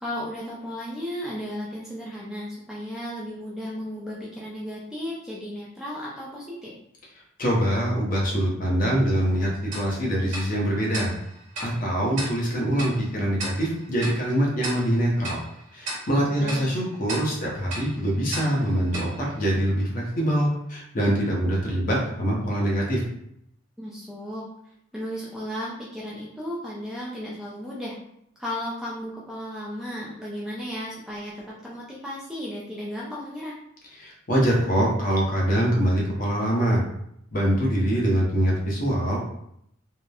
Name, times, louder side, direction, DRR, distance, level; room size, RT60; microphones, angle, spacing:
voice 1, 0.0-6.7 16.2-16.6 23.8-24.4 24.9-28.0 28.4-33.5, equal, ahead, -6 dB, 0.3 m, -34 dB
voice 2, 7.4-11.1 11.6-15.4 15.7-23.0 34.0-36.8 37.3-39.2, equal, 40° left, -2 dB, 0.7 m, -24 dB
Tick-tock, 9.7-20.2, right 2 dB, 40° right, 0.9 m, -38 dB
2.9 x 2.0 x 2.3 m, 0.73 s
head